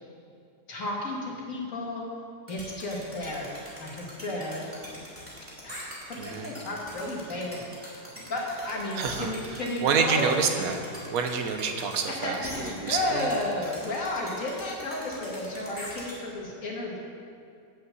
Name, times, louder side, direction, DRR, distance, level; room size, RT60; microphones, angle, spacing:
voice 1, 0.7-2.0 2.5-3.5 3.8-4.7 5.6-7.6 8.3-10.2 12.1-17.0, left 1 dB, 55° left, -2 dB, 2.0 m, -33 dB
sound 1, 2.5-16.1, equal, 10° right, 2.7 m, -42 dB
voice 2, 6.2-6.5 9.0-9.3 9.8-10.8 11.1-13.3, right 5 dB, 65° right, 5 dB, 1.3 m, -27 dB
9.1 x 5.7 x 7.7 m, 2.4 s
omnidirectional pair, 1.8 m